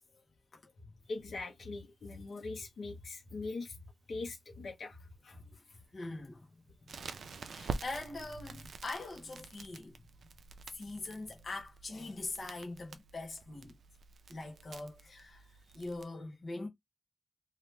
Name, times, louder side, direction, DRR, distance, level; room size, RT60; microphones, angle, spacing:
voice 1, 1.1-3.7 4.1-5.0 5.2-5.4, left 3 dB, 70° left, 1.2 m, -41 dB
voice 2, 5.5-6.5 7.0-7.2 7.4-10.0 10.7-13.7 14.3-16.7, left 2 dB, 40° left, 1.1 m, -43 dB
Crackle, 6.9-16.0, right 4 dB, 75° right, 0.5 m, -47 dB
2.9 x 2.7 x 3.4 m
wide cardioid pair, 160°, 0 cm